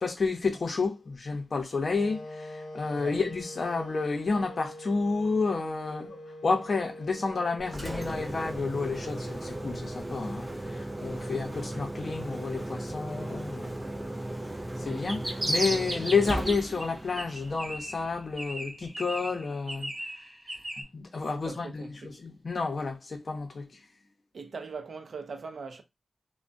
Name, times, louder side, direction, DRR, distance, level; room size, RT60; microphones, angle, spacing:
voice 1, 0.0-14.0 14.8-19.9 20.9-23.8, left 4 dB, 50° left, 0.7 m, -30 dB
sound 1, 1.9-9.9, left 1 dB, 90° left, 0.6 m, -45 dB
voice 2, 2.9-3.2 11.2-11.4 21.3-22.2 24.3-25.8, right 4 dB, 65° right, 0.5 m, -41 dB
Engine, 7.6-18.5, right 1 dB, 15° right, 0.3 m, -37 dB
sound 2, 14.9-16.8 17.2-18.1 18.4-20.8, right 1 dB, 30° right, 0.9 m, -34 dB
3.4 x 2.1 x 2.5 m
wide cardioid pair, 140°, 0 cm